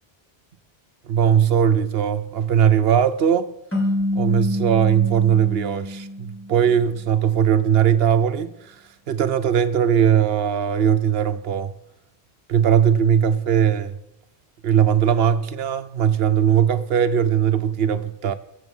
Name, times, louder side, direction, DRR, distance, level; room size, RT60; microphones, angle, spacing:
voice 1, 1.0-3.5 4.1-11.7 12.5-14.0 14.6-18.3, right 8 dB, 75° right, 0.9 m, -19 dB
sound 1, 3.7-6.9, left 1 dB, 10° left, 3.0 m, -27 dB
22.0 x 7.5 x 5.4 m
omnidirectional pair, 1.0 m